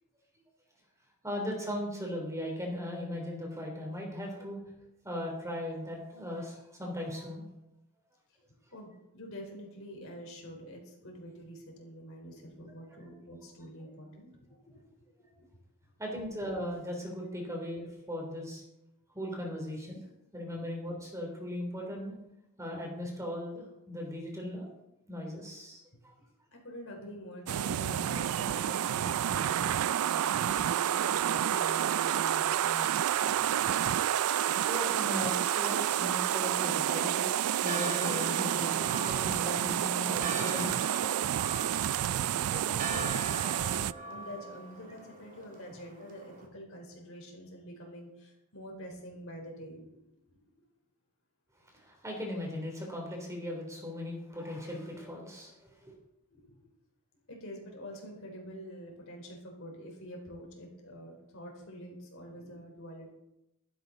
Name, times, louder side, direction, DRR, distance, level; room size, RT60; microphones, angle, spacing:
voice 1, 1.2-4.6 5.0-7.4 12.8-13.1 16.0-18.6 19.1-20.0 20.3-22.1 22.6-24.7 25.1-25.8 34.6-37.2 37.6-41.2 42.1-42.4 43.1-43.2 51.7-55.9, left 1 dB, 15° right, 0 dB, 3.4 m, -38 dB
voice 2, 8.7-14.3 14.7-14.8 15.1-15.5 20.6-20.7 25.9-26.0 26.5-33.0 33.2-33.8 42.2-49.8 50.3-50.4 56.3-56.7 57.3-63.1, equal, 65° left, 1 dB, 4.4 m, -46 dB
sound 1, 27.5-43.9, right 10 dB, 75° right, 0.4 m, -29 dB
Church bell, 37.6-46.5, right 2 dB, 35° right, 2.4 m, -42 dB
15.5 x 13.0 x 4.1 m, 0.88 s
head